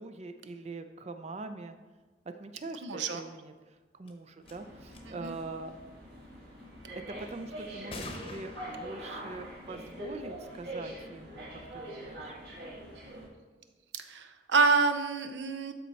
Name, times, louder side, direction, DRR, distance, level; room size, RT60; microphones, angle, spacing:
voice 1, 0.0-1.7 2.3-5.8 7.1-12.3, right 3 dB, 35° right, 8 dB, 0.4 m, -43 dB
voice 2, 2.8-3.2 5.1-5.4 13.9-15.7, right 4 dB, 80° right, 9 dB, 0.6 m, -28 dB
sound 1, 4.1-4.2 4.5-4.6 4.9-5.3 7.9-8.8, left 2 dB, 30° left, 0.9 m, -42 dB
sound 2, 4.4-13.3, right 1 dB, 60° right, 2.2 m, -44 dB
12.0 x 4.3 x 4.1 m, 1.3 s
head